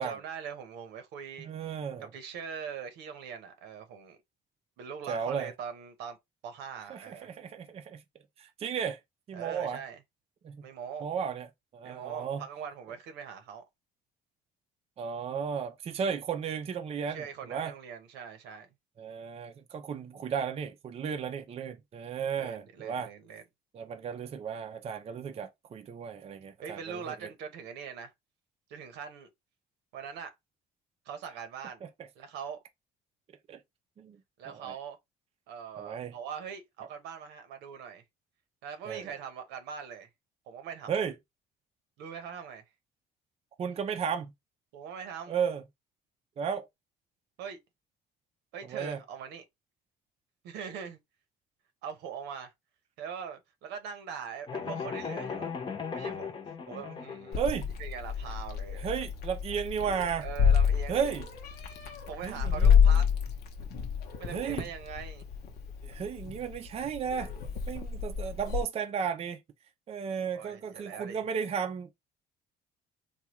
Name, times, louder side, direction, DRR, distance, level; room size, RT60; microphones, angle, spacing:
voice 1, 0.0-1.5 2.0-4.2 4.8-6.2 6.4-7.3 9.3-10.0 10.6-11.1 11.8-13.6 17.1-18.7 22.3-23.4 26.6-28.1 28.7-29.3 29.9-30.3 31.1-31.8 32.2-32.6 34.4-35.0 35.5-38.0 38.6-40.1 40.5-40.9 42.0-42.6 44.7-45.4 47.4-47.6 48.5-49.4 50.4-51.0 51.8-52.5 53.0-55.5 55.9-56.4 56.7-57.4 57.8-58.9 60.2-61.2 61.9-63.1 64.2-65.3 70.3-71.2, right 7 dB, 90° right, 0.9 m, -42 dB
voice 2, 1.4-2.1 5.1-5.5 6.9-8.0 8.4-9.0 9.3-9.8 10.4-10.6 11.0-11.5 11.7-12.4 15.0-17.7 19.0-23.1 23.7-27.3 31.8-31.9 33.5-33.6 34.0-34.2 34.5-34.7 35.8-36.1 38.8-39.1 40.9-41.1 43.6-44.3 45.3-45.6 46.4-46.7 48.6-49.0 57.4-57.7 58.7-60.3 60.9-61.3 62.2-63.0 64.3-64.7 65.8-67.3 67.7-69.4 69.9-71.9, right 7 dB, 35° right, 0.5 m, -34 dB
sound 1, 54.5-57.4, left 6 dB, 30° left, 0.8 m, -37 dB
Meow, 57.3-68.6, left 7 dB, 65° left, 0.8 m, -28 dB
3.5 x 2.3 x 3.0 m
cardioid pair, 110°, 17 cm